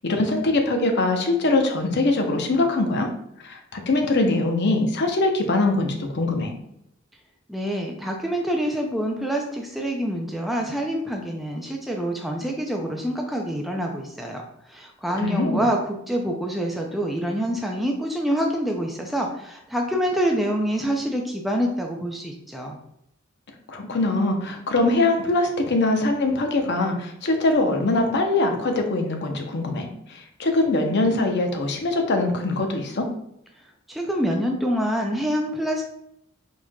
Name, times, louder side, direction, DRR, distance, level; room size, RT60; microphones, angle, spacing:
voice 1, 0.0-3.1 3.4-6.5 15.2-15.6 23.7-33.1, left 2 dB, 55° left, 4 dB, 0.7 m, -22 dB
voice 2, 7.5-14.4 14.7-22.8 33.9-35.8, equal, ahead, 0 dB, 0.4 m, -26 dB
4.6 x 4.3 x 2.2 m, 0.77 s
head